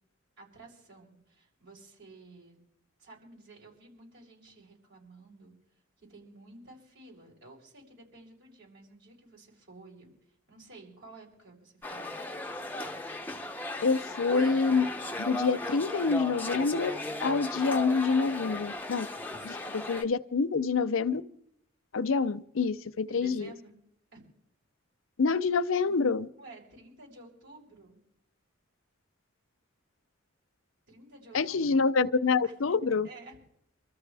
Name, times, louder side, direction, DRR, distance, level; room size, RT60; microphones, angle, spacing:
voice 1, 0.4-2.6 3.0-5.5 6.0-10.1 10.5-12.1 19.5-19.7 23.1-23.8 24.1-24.2 26.4-28.0 30.9-31.7 32.4-33.4, right 2 dB, 65° right, -3 dB, 7.2 m, -52 dB
sound 1, 11.8-20.0, left 1 dB, 10° left, 0.8 m, -36 dB
voice 2, 13.8-14.9 15.2-16.9 17.2-19.1 19.7-21.2 21.9-23.5 25.2-26.3 31.3-33.1, left 4 dB, 75° left, 12 dB, 0.6 m, -27 dB
27.0 x 13.5 x 3.4 m, 0.72 s
head